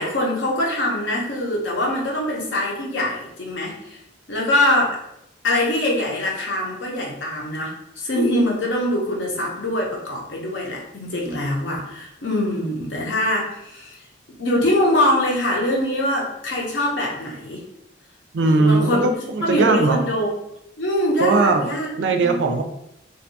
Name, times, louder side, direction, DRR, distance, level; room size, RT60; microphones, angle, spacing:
voice 1, 0.0-4.0 4.3-5.0 5.4-14.0 14.4-17.6 18.4-19.1 19.4-20.3 20.8-21.9 22.2-22.4, left 1 dB, 80° left, -2 dB, 0.7 m, -23 dB
voice 2, 18.3-20.0 21.2-21.6 22.0-22.6, right 3 dB, 80° right, 6 dB, 0.4 m, -19 dB
2.6 x 2.2 x 2.7 m, 0.81 s
head